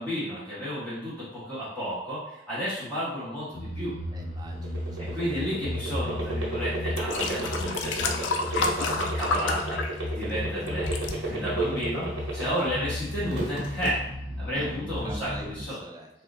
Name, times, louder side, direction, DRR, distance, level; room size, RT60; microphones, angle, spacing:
voice 1, 0.0-3.9 5.0-9.8 10.1-10.9 11.2-12.1 12.3-14.0 14.4-15.8, equal, 10° left, -11 dB, 1.2 m, -32 dB
sound 1, 3.5-15.6, left 1 dB, 45° left, 0.7 m, -35 dB
voice 2, 4.1-5.2 14.5-16.1, right 1 dB, 20° right, 2 dB, 0.4 m, -44 dB
sound 2, 4.5-12.8 13.1-13.9, right 2 dB, 85° right, 1.1 m, -32 dB
sound 3, 6.3-6.4 6.9-10.4 10.7-11.1 11.8-11.9, left 4 dB, 75° left, 0.4 m, -30 dB
3.5 x 2.4 x 3.9 m, 0.80 s
head